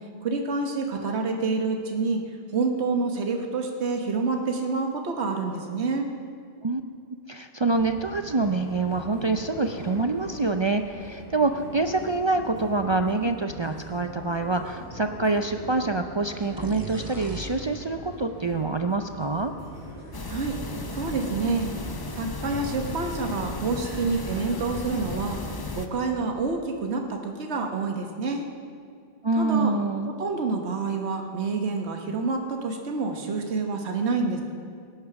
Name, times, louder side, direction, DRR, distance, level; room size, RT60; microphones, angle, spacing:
voice 1, 0.2-2.3 2.5-6.1 20.3-20.6 20.9-21.7 22.1-25.4 25.7-28.4 29.3-29.7 30.1-34.4, right 4 dB, 75° right, 3 dB, 1.4 m, -28 dB
voice 2, 7.3-19.5 29.2-30.1, right 3 dB, 45° right, 6 dB, 0.3 m, -26 dB
sound 1, 7.7-25.7, equal, 75° left, 4.6 m, -41 dB
sound 2, 16.6-20.3, right 2 dB, 20° right, 0.7 m, -41 dB
sound 3, 20.1-25.9, left 3 dB, 25° left, 0.6 m, -35 dB
17.5 x 9.9 x 5.9 m, 2.1 s
omnidirectional pair, 1.1 m